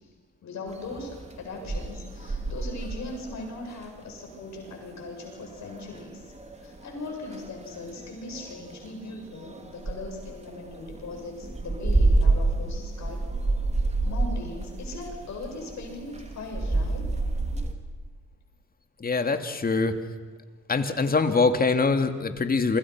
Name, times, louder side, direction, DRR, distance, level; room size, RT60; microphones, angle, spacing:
voice 1, 0.4-6.3 6.6-13.2 14.0-17.1, left 2 dB, 65° left, 1 dB, 7.7 m, -39 dB
sound 1, 0.7-17.7, right 2 dB, 20° right, 3.0 m, -30 dB
voice 2, 19.0-19.9 20.7-22.8, left 4 dB, 30° left, 8 dB, 2.3 m, -23 dB
28.0 x 25.0 x 6.1 m, 1.4 s
cardioid pair, 90°, 30 cm